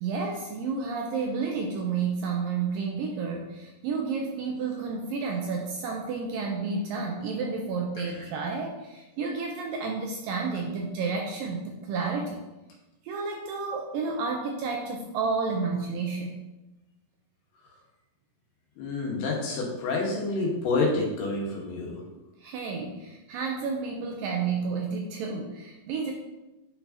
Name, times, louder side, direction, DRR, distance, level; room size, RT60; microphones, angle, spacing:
voice 1, 0.0-12.4 13.0-16.4 22.4-26.1, right 4 dB, 85° right, 1 dB, 2.1 m, -31 dB
voice 2, 18.8-22.0, left 3 dB, 85° left, -2 dB, 3.4 m, -28 dB
9.8 x 4.7 x 2.8 m, 1.0 s
omnidirectional pair, 4.5 m